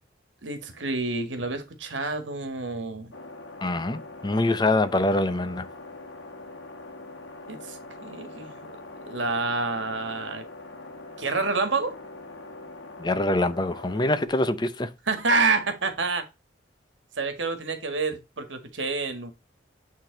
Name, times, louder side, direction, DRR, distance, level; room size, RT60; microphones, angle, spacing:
voice 1, 0.4-3.1 7.5-8.7 9.1-10.4 11.2-12.0 15.1-16.2 17.2-19.3, right 3 dB, 80° right, 1.7 m, -28 dB
sound 1, 3.1-14.3, left 2 dB, 75° left, 1.7 m, -43 dB
voice 2, 3.6-5.7 13.0-14.9, left 2 dB, 25° left, 0.6 m, -24 dB
9.0 x 3.8 x 3.9 m
head